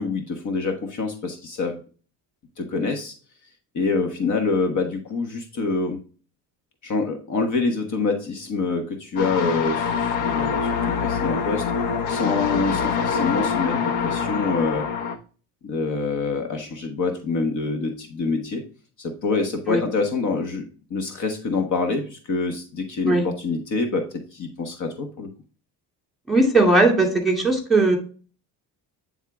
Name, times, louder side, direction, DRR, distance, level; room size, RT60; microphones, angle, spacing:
voice 1, 0.0-1.8 2.6-3.1 3.7-6.0 6.8-11.7 12.1-14.9 15.6-18.6 19.0-25.3, left 4 dB, 50° left, 4 dB, 1.3 m, -26 dB
sound 1, 9.2-15.2, left 6 dB, 80° left, 1.1 m, -25 dB
voice 2, 26.3-28.0, right 2 dB, ahead, 1 dB, 2.4 m, -18 dB
9.0 x 3.7 x 3.5 m, 0.38 s
cardioid pair, 105°, 39 cm